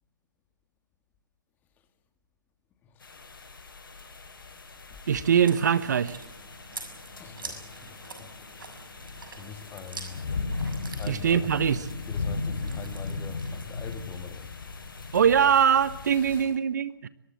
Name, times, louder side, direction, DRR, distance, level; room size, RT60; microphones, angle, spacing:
voice 1, 2.8-3.2 7.2-8.9 9.3-10.3 11.0-11.6 12.1-14.5 16.1-16.5, left 7 dB, 15° left, 2.2 m, -44 dB
sound 1, 3.0-16.4, left 3 dB, 70° left, 7.7 m, -37 dB
voice 2, 5.1-6.2 11.1-11.9 15.1-17.1, right 8 dB, 55° right, 1.2 m, -22 dB
Chewing mastication, 5.2-14.1, right 3 dB, 70° right, 6.4 m, -46 dB
22.5 x 22.5 x 7.8 m
figure-of-eight pair, 145°, 12 cm